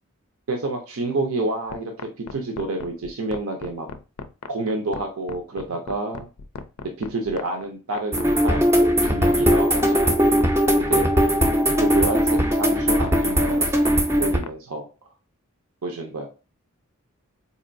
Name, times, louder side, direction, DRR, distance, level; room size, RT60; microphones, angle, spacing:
voice 1, 0.5-3.9 4.5-6.3 7.0-10.2 10.8-11.1 11.8-13.8 14.2-14.9 15.8-16.3, right 2 dB, 70° right, 3 dB, 0.6 m, -29 dB
sound 1, 1.7-14.5, left 5 dB, 90° left, 0.4 m, -36 dB
sound 2, 8.1-14.4, equal, 10° right, 0.5 m, -19 dB
4.1 x 2.6 x 2.6 m, 0.33 s
head